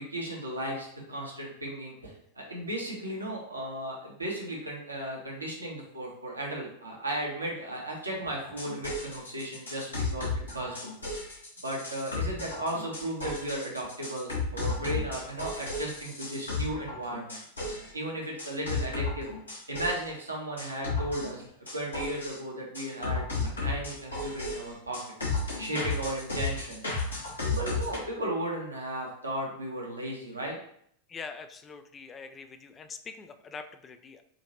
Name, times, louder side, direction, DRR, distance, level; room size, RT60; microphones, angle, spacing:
voice 1, 0.0-10.8 11.6-19.3 19.7-21.4 21.7-23.2 23.6-25.0 25.6-26.8 27.4-30.6, right 1 dB, 80° right, -2 dB, 1.0 m, -35 dB
sound 1, 8.4-17.9 18.4-20.1 20.6-22.4 22.7-28.0, left 3 dB, 75° left, 1.4 m, -33 dB
voice 2, 31.1-34.2, left 5 dB, 20° left, 8 dB, 0.3 m, -44 dB
5.0 x 2.7 x 2.9 m, 0.66 s
figure-of-eight pair, 90°, 0 cm